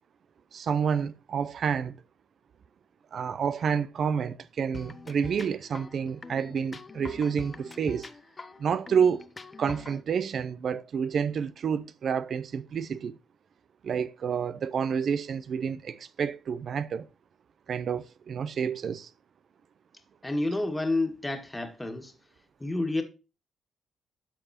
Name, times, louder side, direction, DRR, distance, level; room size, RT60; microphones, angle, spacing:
voice 1, 0.5-2.0 3.1-8.1 8.6-9.3 9.6-13.2 13.8-17.1 17.7-19.1, right 7 dB, 60° right, 0.5 m, -29 dB
sound 1, 4.7-10.0, left 3 dB, 30° left, 0.8 m, -44 dB
voice 2, 20.2-22.1 22.6-23.0, left 2 dB, 15° left, 1.8 m, -29 dB
12.5 x 4.7 x 2.8 m
supercardioid pair, 70°, 0 cm